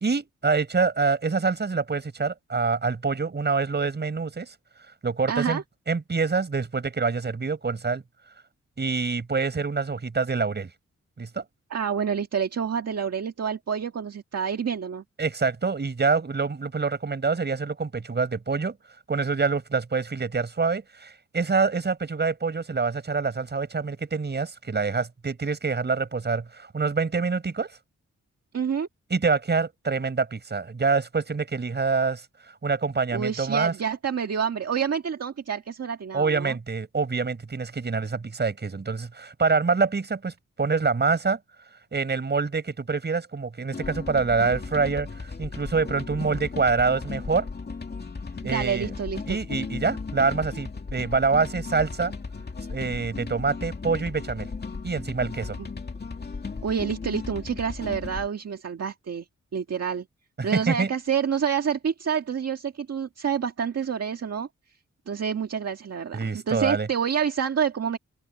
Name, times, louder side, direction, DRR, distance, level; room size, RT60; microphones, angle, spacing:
voice 1, 0.0-4.5 5.0-5.6 5.9-8.0 8.8-10.7 11.2-11.4 15.2-18.8 19.1-27.7 29.1-32.2 32.6-33.7 36.1-41.4 41.9-47.5 48.4-48.9 49.3-52.1 52.7-54.5 54.8-55.6 60.4-60.9 66.1-66.9, right 4 dB, 35° right, 5.4 m, -26 dB
voice 2, 5.3-5.6 11.7-15.0 28.5-28.9 33.1-36.6 48.4-49.4 55.6-55.7 56.6-59.3 59.5-60.0 60.4-64.5 65.1-68.0, right 7 dB, 60° right, 1.8 m, -28 dB
sound 1, 43.7-58.3, left 4 dB, 35° left, 2.4 m, -36 dB
open air
wide cardioid pair, 160°, 29 cm